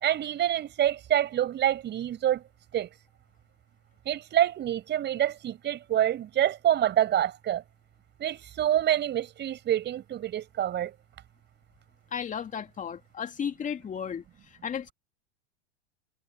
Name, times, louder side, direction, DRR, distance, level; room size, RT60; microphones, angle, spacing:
voice 1, 0.0-2.4 2.7-2.9 4.1-7.6 8.2-10.9, right 11 dB, 30° right, 5.7 m, -26 dB
voice 2, 12.1-14.9, left 7 dB, 20° left, 2.2 m, -34 dB
hypercardioid pair, 95°, 34 cm